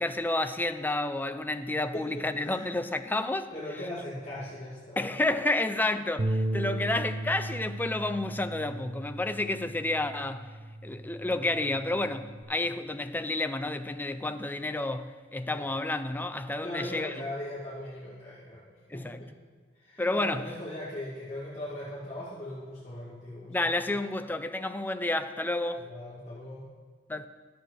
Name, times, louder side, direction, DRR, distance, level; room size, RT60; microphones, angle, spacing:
voice 1, 0.0-3.5 5.0-10.5 10.8-17.1 18.9-19.2 20.0-20.4 23.5-25.9 27.1-27.3, left 2 dB, 10° left, 0.5 m, -30 dB
voice 2, 1.9-2.7 3.5-5.2 15.5-15.7 16.6-19.3 19.7-23.7 25.7-26.7, left 1 dB, 35° left, 2.5 m, -39 dB
Bass guitar, 6.2-12.4, right 1 dB, 35° right, 0.8 m, -36 dB
12.0 x 7.8 x 6.5 m
head